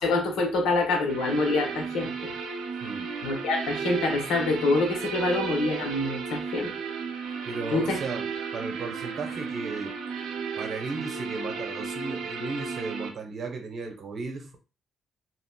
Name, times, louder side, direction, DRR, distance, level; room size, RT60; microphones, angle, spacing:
voice 1, 0.0-2.3 3.2-6.7 7.7-8.0, left 2 dB, 85° left, 1.1 m, -26 dB
sound 1, 1.1-13.1, right 5 dB, 85° right, 0.6 m, -34 dB
voice 2, 2.8-3.1 7.4-9.9 10.6-14.6, right 4 dB, 55° right, 0.9 m, -35 dB
3.0 x 2.8 x 2.2 m
cardioid pair, 90°, 0 cm